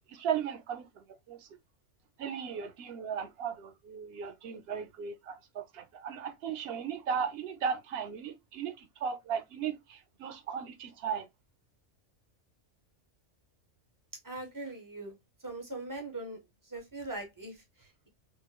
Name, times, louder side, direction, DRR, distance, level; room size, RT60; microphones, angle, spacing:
voice 1, 0.1-1.4 2.2-8.7 9.0-11.2, right 7 dB, 65° right, 0.7 m, -36 dB
voice 2, 14.2-15.2 15.4-18.1, right 2 dB, 20° right, 0.6 m, -41 dB
3.0 x 2.2 x 2.2 m
omnidirectional pair, 1.3 m